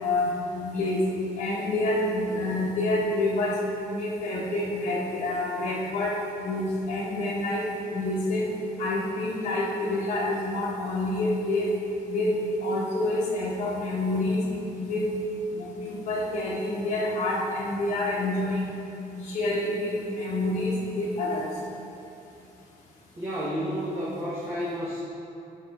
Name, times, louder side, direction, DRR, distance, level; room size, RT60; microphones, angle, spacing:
voice 1, 0.0-1.1 1.4-3.6 3.9-8.5 8.8-11.7 12.1-14.5 14.8-15.1 15.6-18.6 19.1-21.5, left 2 dB, 50° left, -6 dB, 1.1 m, -27 dB
voice 2, 23.2-25.0, equal, 15° right, -8 dB, 0.9 m, -31 dB
6.9 x 4.9 x 3.4 m, 2.7 s
cardioid pair, 165°, 16 cm